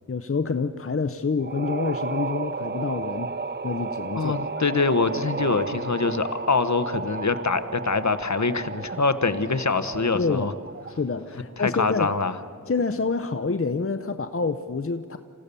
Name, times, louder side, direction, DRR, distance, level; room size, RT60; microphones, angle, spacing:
voice 1, 0.1-3.3 3.6-4.6 10.1-10.5 10.9-12.1 12.7-15.2, left 4 dB, 45° left, 10 dB, 0.8 m, -27 dB
sound 1, 1.4-11.1, right 4 dB, 35° right, 0.6 m, -33 dB
voice 2, 4.1-10.5 11.6-12.4, left 4 dB, 60° left, 11 dB, 1.2 m, -24 dB
27.5 x 16.0 x 6.9 m, 2.5 s
wide cardioid pair, 45°, 32 cm